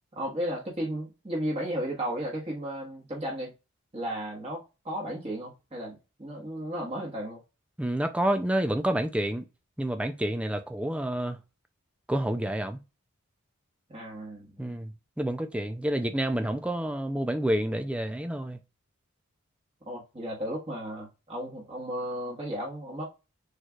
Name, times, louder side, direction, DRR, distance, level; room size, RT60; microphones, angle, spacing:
voice 1, 0.1-3.5 3.9-7.4 13.9-14.7 19.8-23.1, equal, 30° right, 1.4 m, -34 dB
voice 2, 7.8-9.4 9.8-11.4 12.1-12.8 14.6-18.6, right 1 dB, 5° right, 0.4 m, -29 dB
6.5 x 3.1 x 2.4 m
head